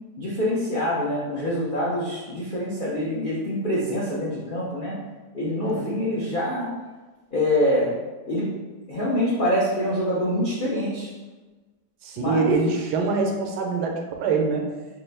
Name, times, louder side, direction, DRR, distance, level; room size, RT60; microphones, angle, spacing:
voice 1, 0.2-5.0 5.3-6.7 7.3-7.9 8.2-8.5 8.9-11.1 12.2-12.4, left 1 dB, 80° left, -6 dB, 0.4 m, -25 dB
voice 2, 12.0-14.7, right 4 dB, 80° right, 2 dB, 1.2 m, -24 dB
3.9 x 2.5 x 3.3 m, 1.2 s
omnidirectional pair, 1.8 m